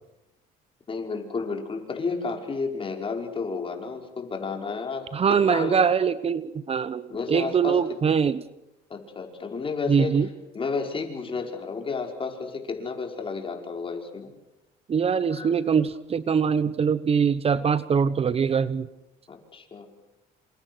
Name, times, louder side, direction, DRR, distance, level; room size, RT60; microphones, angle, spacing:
voice 1, 0.9-5.9 7.1-7.8 8.9-10.3 10.5-14.3 15.3-15.5 19.3-19.9, left 4 dB, 30° left, 3 dB, 5.4 m, -32 dB
voice 2, 5.1-8.4 9.9-10.3 14.9-18.9, right 6 dB, 35° right, 15 dB, 1.0 m, -23 dB
28.5 x 27.0 x 6.3 m, 0.93 s
cardioid pair, 110°, 17 cm